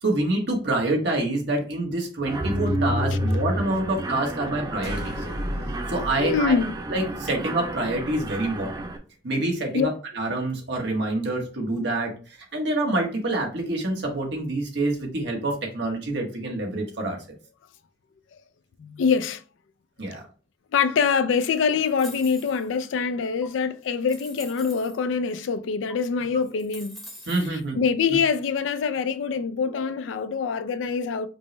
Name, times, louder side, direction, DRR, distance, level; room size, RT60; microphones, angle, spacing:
voice 1, 0.0-5.1 5.9-6.6 6.9-8.8 9.2-12.1 12.5-17.2 20.0-20.2 27.3-27.8, right 2 dB, 65° right, 1.1 m, -26 dB
Mechanisms, 2.3-9.0, right 1 dB, 20° right, 0.4 m, -30 dB
sound 1, 4.8-7.4, left 1 dB, 55° left, 0.9 m, -35 dB
voice 2, 6.2-6.7 9.7-9.9 18.8-19.4 20.7-27.0 27.5-31.3, left 6 dB, 90° left, 0.3 m, -24 dB
sound 2, 21.8-22.8 23.4-23.5 24.0-25.0 25.9-26.0 26.4-27.6, equal, ahead, 0.8 m, -44 dB
5.2 x 2.1 x 3.0 m
head